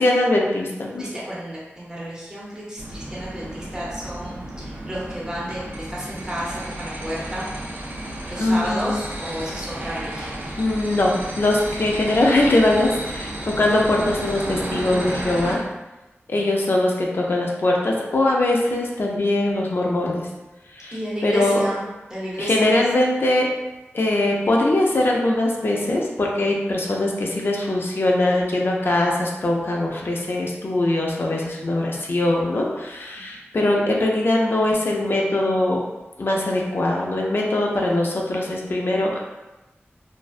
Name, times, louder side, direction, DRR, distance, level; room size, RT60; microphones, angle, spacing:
voice 1, 0.0-1.0 8.4-9.0 10.6-15.6 16.3-20.3 20.7-21.6 22.4-23.5 23.9-35.8 36.2-39.2, left 1 dB, 55° left, -1 dB, 0.4 m, -21 dB
voice 2, 1.0-7.5 8.3-10.5 14.5-14.7 16.3-16.6 20.9-22.8, equal, 15° right, -7 dB, 0.7 m, -31 dB
sound 1, 2.8-15.6, right 1 dB, 45° right, 0.4 m, -33 dB
2.5 x 2.1 x 2.3 m, 1.1 s
wide cardioid pair, 65°, 5 cm